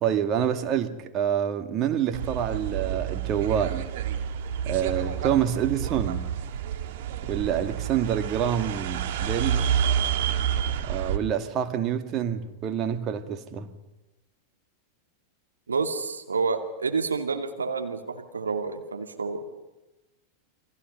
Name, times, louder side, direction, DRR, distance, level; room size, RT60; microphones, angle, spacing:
voice 1, 0.0-3.9 4.7-6.3 7.2-9.7 10.8-13.7, right 9 dB, 35° right, 2.0 m, -27 dB
sound 1, 2.1-11.2, right 9 dB, 50° right, 1.9 m, -29 dB
voice 2, 15.7-19.4, right 4 dB, 75° right, 2.5 m, -29 dB
29.5 x 24.5 x 5.6 m
figure-of-eight pair, 90°, 0 cm